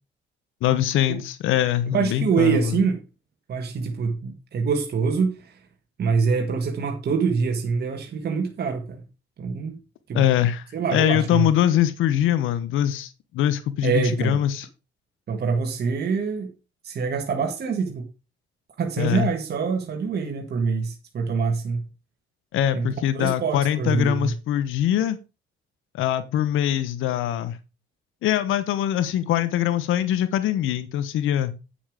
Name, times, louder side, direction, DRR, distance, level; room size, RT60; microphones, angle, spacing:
voice 1, 0.6-2.8 10.1-14.7 19.0-19.3 22.5-25.2 25.9-27.6 28.2-31.5, left 11 dB, 85° left, 1.0 m, -23 dB
voice 2, 1.9-3.0 3.5-5.5 6.0-9.0 9.4-9.8 10.1-10.2 10.7-11.5 13.8-14.4 15.3-16.5 16.8-18.0 18.8-21.8 22.7-22.9 23.1-24.3, right 5 dB, 55° right, 1.8 m, -25 dB
9.0 x 7.2 x 5.0 m
cardioid pair, 90°, 20 cm